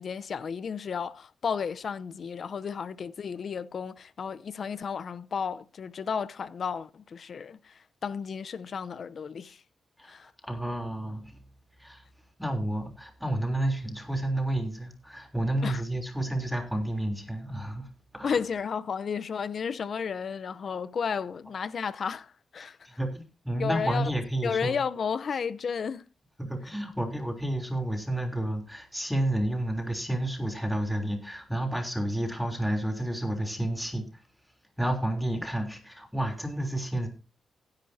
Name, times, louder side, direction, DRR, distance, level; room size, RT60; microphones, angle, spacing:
voice 1, 0.0-9.6 10.0-10.3 15.6-15.8 18.2-22.8 23.6-24.1 24.4-26.1, left 6 dB, 65° left, 0.8 m, -33 dB
voice 2, 10.0-11.4 11.8-12.0 12.4-17.9 18.1-18.4 22.6-24.8 26.4-34.1 34.8-37.1, right 1 dB, ahead, 3.4 m, -30 dB
16.0 x 10.5 x 2.8 m
cardioid pair, 55°, 0 cm